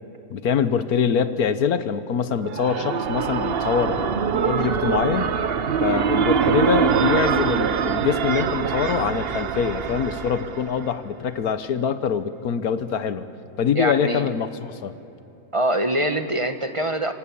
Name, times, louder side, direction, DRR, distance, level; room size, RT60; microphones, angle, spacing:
voice 1, 0.3-4.1 4.4-5.4 5.8-13.3 13.6-14.9, left 7 dB, 70° left, 12 dB, 1.4 m, -24 dB
sound 1, 2.2-11.0, right 7 dB, 45° right, 0.9 m, -24 dB
sound 2, 3.0-10.3, right 2 dB, 5° right, 5.0 m, -40 dB
voice 2, 13.7-14.3 15.5-17.1, right 1 dB, 25° right, 8 dB, 1.0 m, -23 dB
27.0 x 25.5 x 8.6 m, 3.0 s
omnidirectional pair, 1.7 m